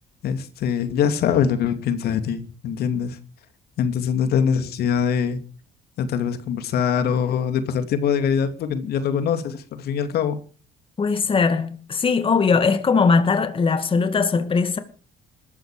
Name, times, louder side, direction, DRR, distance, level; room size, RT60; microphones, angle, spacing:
voice 1, 0.2-3.2 3.8-5.4 6.0-10.4, left 7 dB, 70° left, 2.6 m, -23 dB
voice 2, 11.0-14.8, left 5 dB, 30° left, 2.3 m, -20 dB
20.5 x 14.0 x 5.1 m
cardioid pair, 110°, 17 cm